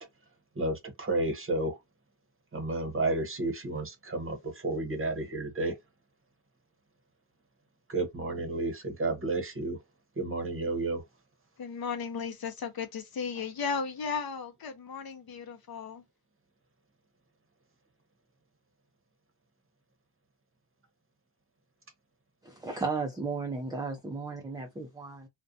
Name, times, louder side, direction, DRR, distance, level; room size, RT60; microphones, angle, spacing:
voice 1, 0.5-1.8 2.5-5.8 7.9-9.8 10.2-11.0, right 2 dB, 30° right, 0.8 m, -31 dB
voice 2, 11.6-16.0, left 5 dB, 50° left, 0.7 m, -35 dB
voice 3, 22.4-25.3, right 4 dB, 10° right, 0.3 m, -34 dB
2.5 x 2.2 x 2.6 m
wide cardioid pair, 120°, 47 cm